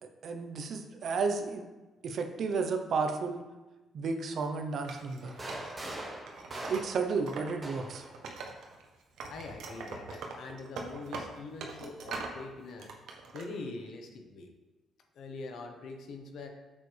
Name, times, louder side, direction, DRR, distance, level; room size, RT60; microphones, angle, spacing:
voice 1, 0.0-1.7 2.0-3.4 3.9-5.3 6.7-8.0, right 4 dB, 60° right, 5 dB, 0.9 m, -32 dB
Wood, 4.8-7.5 7.8-8.9 9.2-12.4 12.8-13.5, right 4 dB, 80° right, 1.1 m, -42 dB
sound 1, 5.2-8.1 9.2-10.3, right 1 dB, 25° right, 2.0 m, -43 dB
voice 2, 9.3-12.9 13.3-14.5 15.1-16.5, left 3 dB, 70° left, 3 dB, 1.2 m, -43 dB
8.0 x 7.4 x 3.4 m, 1.1 s
cardioid pair, 90°, 0 cm